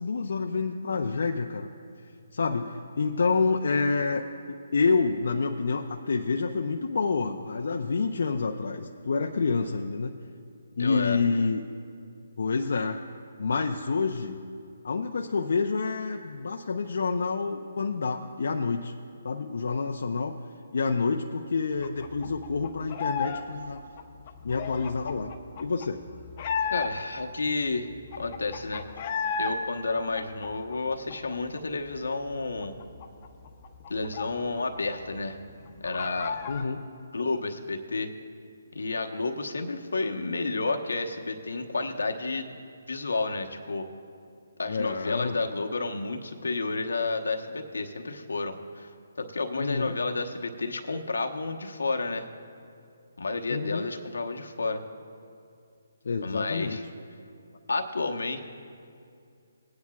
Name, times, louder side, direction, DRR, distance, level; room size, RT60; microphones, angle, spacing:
voice 1, 0.0-1.7 2.3-10.2 10.8-11.6 12.4-13.0 13.4-14.4 14.8-18.9 19.2-20.3 20.7-23.8 24.4-25.3 25.6-26.0 36.5-36.8 44.7-45.4 49.6-50.0 53.5-53.9 56.0-56.8, left 4 dB, 70° left, 2 dB, 0.6 m, -28 dB
voice 2, 10.8-11.2 26.7-27.9 28.2-28.8 29.4-32.8 33.9-35.4 35.8-36.4 37.1-38.1 38.7-42.5 42.9-43.8 44.6-48.9 49.2-52.3 53.2-54.8 56.2-56.8 57.7-58.4, left 3 dB, 85° left, 4 dB, 1.0 m, -31 dB
sound 1, 21.8-23.4 23.7-27.2 27.6-27.7 27.9-29.5 29.9-31.6 31.9-32.0 32.3-34.8 35.1-35.2 35.5-36.7, left 6 dB, 35° left, 0.8 m, -34 dB
20.0 x 9.7 x 2.3 m, 2.5 s
hypercardioid pair, 155°, 0 cm